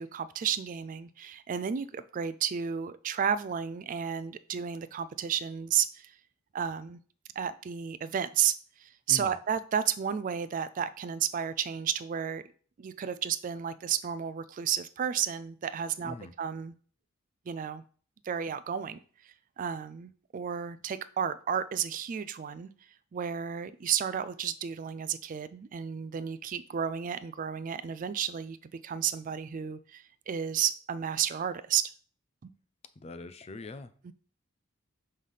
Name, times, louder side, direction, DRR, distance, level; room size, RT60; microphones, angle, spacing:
voice 1, 0.0-6.2 6.5-7.0 7.4-12.4 12.8-16.7 17.5-17.8 18.2-19.0 19.2-22.7 23.1-28.6 28.8-31.9 32.4-32.5 34.0-34.1, right 8 dB, 40° right, 14 dB, 0.3 m, -32 dB
voice 2, 33.0-33.9, left 2 dB, 30° left, 12 dB, 0.4 m, -42 dB
5.5 x 3.3 x 5.5 m, 0.43 s
head